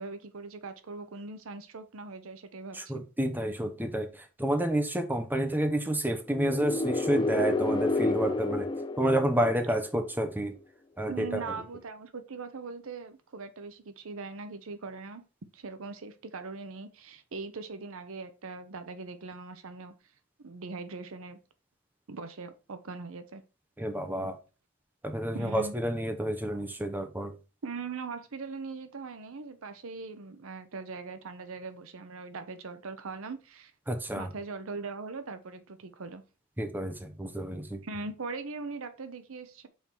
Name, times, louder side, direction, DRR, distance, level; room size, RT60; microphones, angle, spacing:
voice 1, 0.0-3.0 11.1-15.2 15.5-19.9 20.4-21.4 22.1-23.4 25.3-25.7 27.6-33.7 34.1-36.2 37.8-39.7, right 4 dB, 70° right, 0.7 m, -40 dB
voice 2, 2.7-8.7 9.0-10.5 11.0-11.4 23.8-24.4 25.0-27.4 33.9-34.3 36.6-37.8, right 1 dB, 10° right, 0.9 m, -29 dB
sound 1, 6.3-10.1, left 2 dB, 20° left, 0.5 m, -30 dB
5.7 x 4.5 x 4.5 m
head